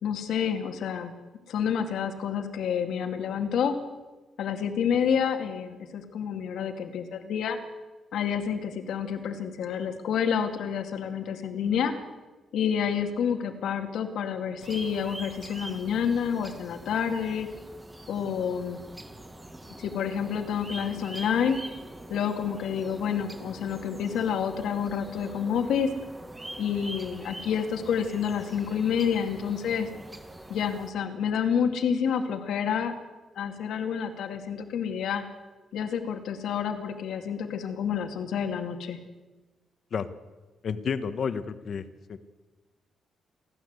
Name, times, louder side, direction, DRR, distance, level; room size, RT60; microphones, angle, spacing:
voice 1, 0.0-1.1 1.5-3.8 4.4-7.6 8.1-11.9 12.5-17.5 18.1-18.8 19.8-21.6 22.1-25.9 26.6-29.9 30.5-32.9 33.4-35.2 35.7-39.0, left 7 dB, 80° left, 5 dB, 2.2 m, -29 dB
sound 1, 14.6-30.9, right 1 dB, 10° right, 1.5 m, -44 dB
voice 2, 40.6-42.2, left 6 dB, 45° left, 11 dB, 1.2 m, -31 dB
30.0 x 12.0 x 8.1 m, 1.2 s
cardioid pair, 160°, 0 cm